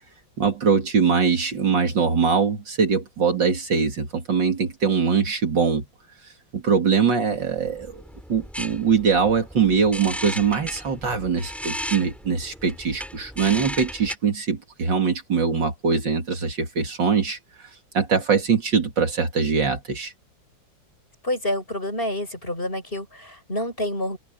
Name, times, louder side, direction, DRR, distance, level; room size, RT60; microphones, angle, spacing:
voice 1, 0.4-5.9 6.5-8.0 8.3-17.7 17.9-20.1, right 5 dB, 65° right, 3.1 m, -22 dB
sound 1, 7.3-14.1, equal, ahead, 5.9 m, -36 dB
voice 2, 21.2-24.2, left 1 dB, 25° left, 8.1 m, -28 dB
omnidirectional pair, 2.1 m